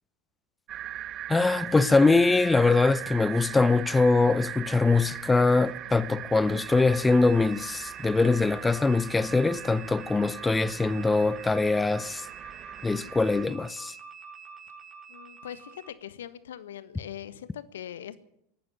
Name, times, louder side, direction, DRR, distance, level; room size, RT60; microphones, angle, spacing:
sound 1, 0.7-13.5, right 12 dB, 35° right, 0.7 m, -40 dB
voice 1, 1.3-12.3 12.8-13.9, left 3 dB, 10° left, 0.7 m, -23 dB
sound 2, 6.6-15.9, right 5 dB, 10° right, 7.9 m, -46 dB
voice 2, 15.1-18.2, left 10 dB, 70° left, 1.3 m, -41 dB
19.0 x 14.5 x 9.7 m
figure-of-eight pair, 85°, 0 cm